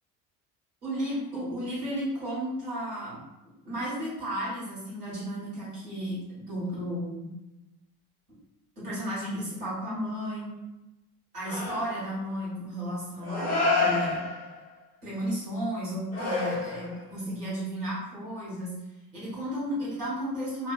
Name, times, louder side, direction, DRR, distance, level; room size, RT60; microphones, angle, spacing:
voice 1, 0.8-3.2 3.6-7.3 8.8-10.5 11.3-14.2 15.0-18.7 19.1-20.7, equal, 80° right, -10 dB, 1.2 m, -33 dB
sound 1, 11.5-12.2 13.2-14.7 16.1-17.1, left 3 dB, 75° left, 0.9 m, -28 dB
3.0 x 2.1 x 2.3 m, 0.97 s
figure-of-eight pair, 60°, 45 cm